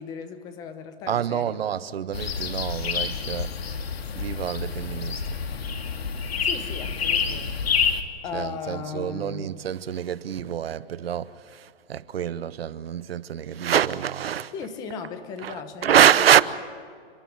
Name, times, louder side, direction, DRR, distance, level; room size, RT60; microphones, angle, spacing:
voice 1, 0.0-1.6 6.4-7.6 7.9-9.5 14.5-16.0, left 6 dB, 10° left, 1.0 m, -37 dB
voice 2, 1.1-3.8 4.1-5.4 8.3-14.5 15.4-16.5, right 9 dB, 70° right, 1.0 m, -25 dB
sound 1, 2.1-8.0, left 6 dB, 75° left, 2.3 m, -28 dB
30.0 x 12.5 x 9.9 m
hypercardioid pair, 175°, 31 cm